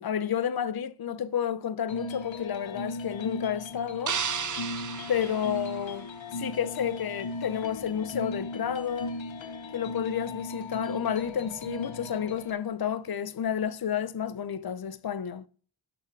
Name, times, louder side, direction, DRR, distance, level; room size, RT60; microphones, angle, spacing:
voice 1, 0.0-4.2 5.1-6.1 6.3-9.2 9.7-15.4, left 8 dB, 55° left, 0.8 m, -31 dB
sound 1, 1.9-12.5, left 2 dB, 90° left, 1.1 m, -37 dB
sound 2, 4.1-6.3, right 7 dB, 40° right, 0.7 m, -34 dB
11.5 x 5.9 x 4.7 m
cardioid pair, 50°, 45 cm